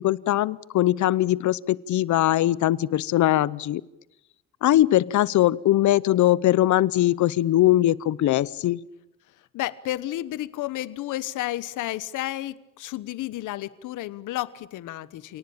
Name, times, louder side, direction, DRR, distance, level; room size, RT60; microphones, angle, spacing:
voice 1, 0.0-3.8 4.6-8.8, left 14 dB, 70° left, 21 dB, 0.8 m, -21 dB
voice 2, 9.5-15.4, left 15 dB, 85° left, 17 dB, 1.1 m, -32 dB
28.0 x 18.5 x 8.8 m, 0.91 s
cardioid pair, 90°, 30 cm